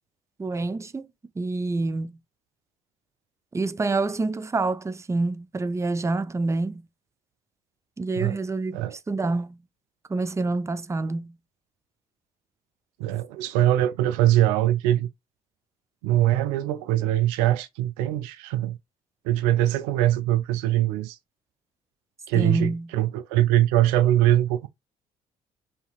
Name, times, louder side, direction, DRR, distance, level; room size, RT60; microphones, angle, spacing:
voice 1, 0.4-1.1 1.4-2.2 3.5-6.9 8.0-9.6 10.1-11.4 22.3-22.9, right 3 dB, 15° right, 0.5 m, -27 dB
voice 2, 13.0-15.1 16.0-18.8 19.2-21.2 22.3-24.7, right 13 dB, 80° right, 0.5 m, -22 dB
5.6 x 2.8 x 2.4 m
hypercardioid pair, 50°, 18 cm